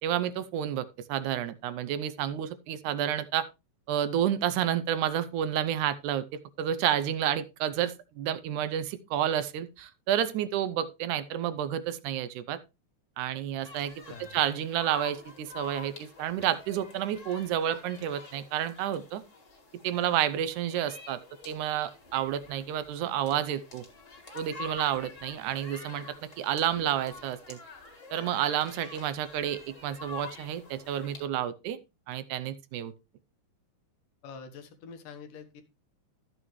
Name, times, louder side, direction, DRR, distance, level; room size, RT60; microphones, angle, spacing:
voice 1, 0.0-3.5 3.9-6.3 6.6-12.6 13.2-13.9 14.2-19.2 19.8-21.2 21.5-23.8 24.3-27.6 28.1-31.8 32.1-32.9, right 10 dB, 80° right, 13 dB, 2.0 m, -30 dB
sound 1, 13.6-31.2, left 4 dB, 30° left, 1.9 m, -47 dB
voice 2, 34.2-35.6, left 5 dB, 80° left, 7 dB, 2.9 m, -46 dB
12.5 x 7.8 x 3.1 m, 0.26 s
omnidirectional pair, 3.7 m